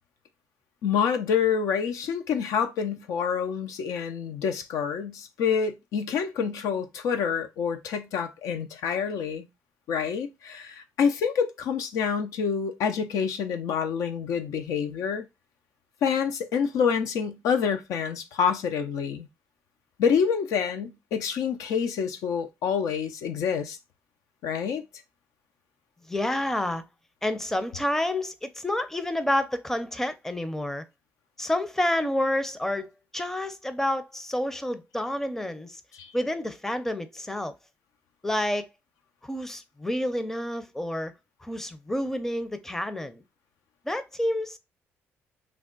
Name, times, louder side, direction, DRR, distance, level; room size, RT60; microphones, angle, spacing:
voice 1, 0.8-9.5 9.9-15.3 16.0-19.3 20.0-23.8 24.4-24.8 35.9-36.1, left 7 dB, 80° left, 0.5 m, -27 dB
voice 2, 26.1-26.8 27.2-30.8 31.4-35.8 36.1-37.5 38.2-38.7 39.2-41.1 41.4-43.2 43.8-44.6, left 1 dB, 5° left, 0.5 m, -29 dB
3.4 x 2.1 x 3.7 m
supercardioid pair, 75°, 6 cm